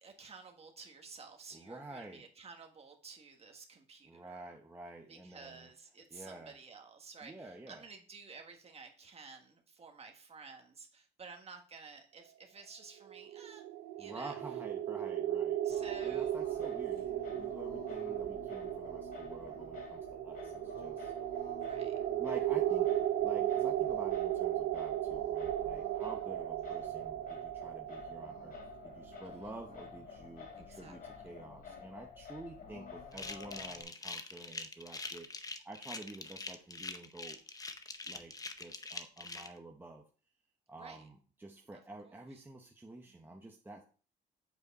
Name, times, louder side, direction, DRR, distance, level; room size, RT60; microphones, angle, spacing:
voice 1, 0.0-4.6 5.1-13.6 14.0-14.4 15.6-16.3 21.7-21.9 22.7-22.9 29.2-29.5 30.6-31.2 40.8-41.1 41.7-42.4 43.1-43.4, right 4 dB, 35° right, 4 dB, 1.5 m, -53 dB
voice 2, 1.5-2.2 4.0-5.7 6.1-6.6 7.2-7.8 14.0-15.6 16.0-21.1 22.2-22.9 23.2-35.3 35.6-37.4 38.1-40.0 40.7-43.8, right 2 dB, 10° right, 1 dB, 0.9 m, -49 dB
sound 1, 13.1-29.9, right 12 dB, 90° right, 0.6 m, -36 dB
Singing, 15.7-33.8, left 6 dB, 55° left, 3.0 m, -50 dB
sound 2, 33.1-39.5, left 3 dB, 20° left, 0.7 m, -44 dB
8.1 x 4.8 x 4.1 m, 0.38 s
cardioid pair, 125°, 19 cm